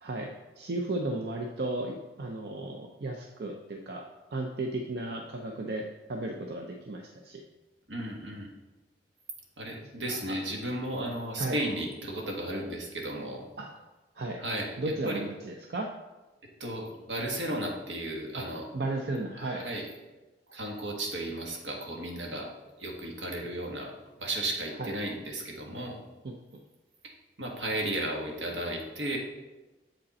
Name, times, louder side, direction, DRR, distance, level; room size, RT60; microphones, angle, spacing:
voice 1, 0.0-4.1 4.3-7.4 10.1-10.4 11.4-11.6 13.6-13.7 14.2-14.4 14.8-15.9 18.4-18.5 18.7-19.6 24.8-25.0 26.2-26.4, right 2 dB, 60° right, 2 dB, 0.5 m, -34 dB
voice 2, 7.9-8.5 9.6-13.5 14.4-14.7 15.0-15.2 16.6-18.6 19.4-19.9 20.5-22.5 22.8-23.9 24.2-26.0 27.4-29.2, right 1 dB, 85° right, 0 dB, 1.5 m, -34 dB
7.5 x 5.1 x 4.1 m, 1.1 s
head